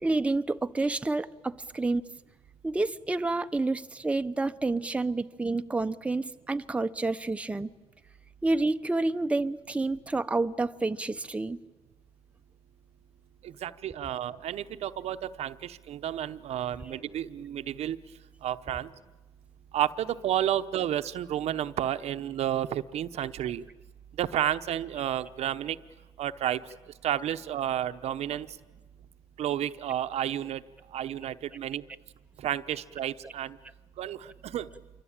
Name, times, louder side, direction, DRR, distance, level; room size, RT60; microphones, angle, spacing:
voice 1, 0.0-2.0 2.6-7.7 8.4-11.6 16.8-17.0 33.2-33.3, right 2 dB, 10° right, 0.8 m, -29 dB
voice 2, 13.6-15.5 15.9-18.0 18.4-18.9 19.7-23.6 24.2-25.7 26.2-26.6 27.0-28.5 29.4-30.6 30.9-31.8 32.4-33.5 34.0-34.2 34.5-34.6, right 11 dB, 65° right, 0.9 m, -31 dB
27.0 x 24.0 x 8.9 m
cardioid pair, 90°, 12 cm